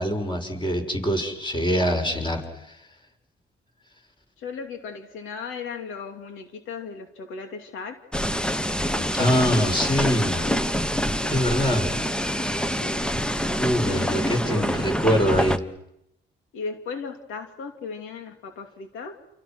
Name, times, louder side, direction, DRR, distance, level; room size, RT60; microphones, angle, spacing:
voice 1, 0.0-2.8 9.2-10.4 11.3-11.9 13.6-15.6, equal, 25° left, 3 dB, 6.6 m, -24 dB
voice 2, 4.4-8.0 8.9-10.6 12.8-13.0 13.9-14.6 16.5-19.2, left 5 dB, 85° left, 5 dB, 2.7 m, -36 dB
sound 1, 8.1-15.6, equal, 5° left, 1.1 m, -26 dB
29.0 x 28.5 x 6.3 m, 0.82 s
cardioid pair, 90°, 20 cm